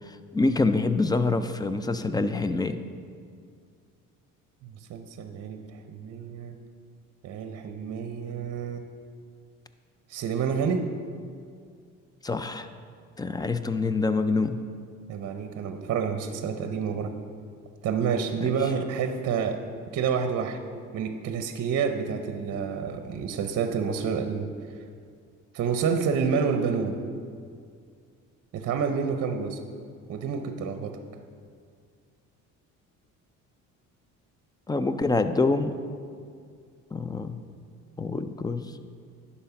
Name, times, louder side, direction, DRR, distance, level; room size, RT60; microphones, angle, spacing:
voice 1, 0.1-2.8 12.2-12.7 13.2-14.6 18.4-18.5 34.7-35.7 36.9-37.4 38.0-38.7, left 3 dB, 15° left, 10 dB, 0.4 m, -26 dB
voice 2, 4.6-6.6 7.2-8.9 10.1-10.9 15.1-17.1 17.8-19.6 19.9-20.6 20.9-24.5 25.5-27.0 28.5-29.6 30.1-31.0, right 6 dB, 55° right, 7 dB, 0.7 m, -28 dB
10.5 x 4.3 x 5.8 m, 2.2 s
cardioid pair, 105°, 31 cm